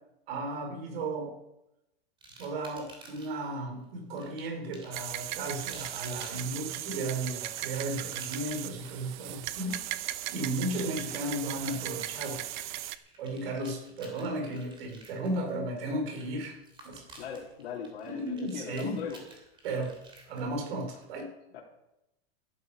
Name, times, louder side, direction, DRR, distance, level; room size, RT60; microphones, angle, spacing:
voice 1, 0.3-1.3 2.4-12.4 13.2-16.5 16.8-17.1 18.0-19.0 19.6-19.9 20.3-21.3, right 1 dB, 65° right, 2 dB, 4.7 m, -35 dB
sound 1, 2.2-3.5 4.2-21.0, right 2 dB, 15° right, 2.8 m, -53 dB
sound 2, 4.9-13.0, right 14 dB, 50° right, 0.7 m, -37 dB
voice 2, 17.2-19.2 21.5-21.6, left 7 dB, 80° left, -5 dB, 3.3 m, -39 dB
14.5 x 12.0 x 5.0 m, 0.88 s
supercardioid pair, 160°, 32 cm